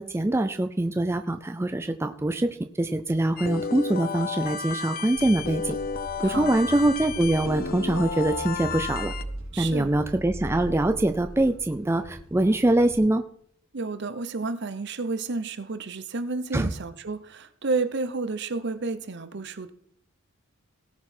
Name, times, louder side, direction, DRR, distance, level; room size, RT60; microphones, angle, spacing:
voice 1, 0.0-5.8 6.2-9.1 9.6-13.2 16.5-16.7, right 1 dB, 10° right, 0.4 m, -24 dB
sound 1, 3.4-9.2, left 5 dB, 45° left, 0.7 m, -32 dB
sound 2, 5.2-13.0, right 1 dB, 85° right, 3.3 m, -40 dB
voice 2, 6.2-6.6 9.5-9.9 13.7-19.7, right 3 dB, 55° right, 0.8 m, -31 dB
18.0 x 6.1 x 4.4 m
head